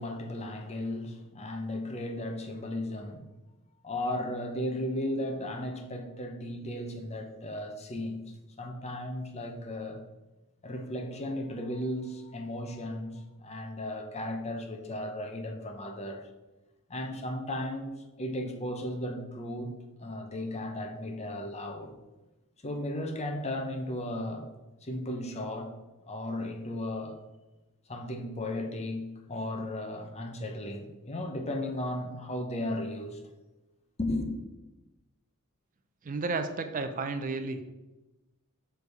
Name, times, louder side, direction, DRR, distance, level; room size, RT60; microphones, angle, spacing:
voice 1, 0.0-3.2 3.8-8.2 8.6-10.0 10.6-16.3 16.9-17.9 18.2-19.7 20.0-21.9 22.6-24.5 24.8-25.7 26.1-27.2 27.9-33.2 34.0-34.3, left 1 dB, 30° left, 0.7 m, -35 dB
voice 2, 36.0-37.7, right 3 dB, 40° right, 0.4 m, -32 dB
6.5 x 3.4 x 4.7 m
head